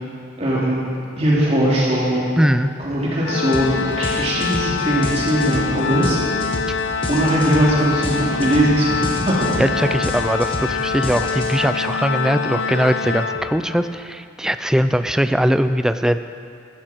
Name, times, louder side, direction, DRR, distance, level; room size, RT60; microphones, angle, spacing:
voice 1, 0.4-0.8 1.2-2.4 2.8-6.4 7.1-9.5, right 1 dB, 35° right, -6 dB, 3.3 m, -20 dB
voice 2, 2.4-2.7 6.7-6.8 9.6-16.2, equal, 5° right, 10 dB, 0.3 m, -20 dB
Organ, 3.2-14.0, left 5 dB, 65° left, 0.5 m, -25 dB
sound 1, 3.5-3.7 4.0-11.8, left 1 dB, 30° left, 1.4 m, -29 dB
15.0 x 13.5 x 4.5 m, 2.4 s
head